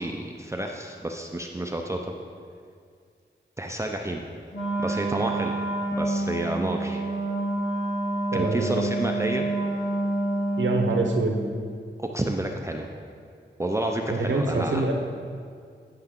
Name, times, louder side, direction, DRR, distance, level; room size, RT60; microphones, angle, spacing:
voice 1, 0.0-2.0 3.6-4.2 4.8-5.5 6.0-7.0 8.3-9.5 12.0-12.9 13.6-14.8, right 1 dB, 15° right, 2 dB, 0.6 m, -29 dB
Wind instrument woodwind instrument, 4.5-11.1, right 2 dB, 85° left, 1.9 m, -28 dB
voice 2, 8.3-8.8 10.6-11.4 14.1-14.9, right 3 dB, 75° right, 2 dB, 0.9 m, -25 dB
10.0 x 5.6 x 3.7 m, 2.2 s
cardioid pair, 45°, 19 cm